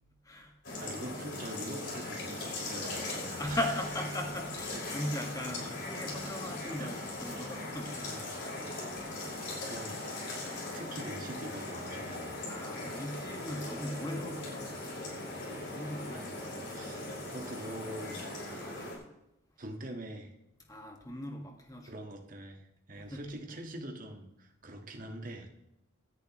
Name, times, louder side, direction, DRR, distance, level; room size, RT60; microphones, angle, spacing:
voice 1, 0.2-0.6 3.4-9.8 12.5-15.0 15.6-17.3 18.6-19.0 20.6-21.9 22.9-23.4, left 1 dB, 15° left, 1.7 m, -40 dB
sound 1, 0.6-19.0, left 2 dB, 55° left, 5.4 m, -39 dB
voice 2, 0.8-3.6 6.8-7.0 8.1-8.3 9.2-10.0 10.7-12.4 16.1-16.4 16.7-17.0 17.3-18.2 19.6-20.3 21.9-25.5, right 1 dB, 40° right, 1.6 m, -44 dB
17.5 x 10.5 x 3.1 m
head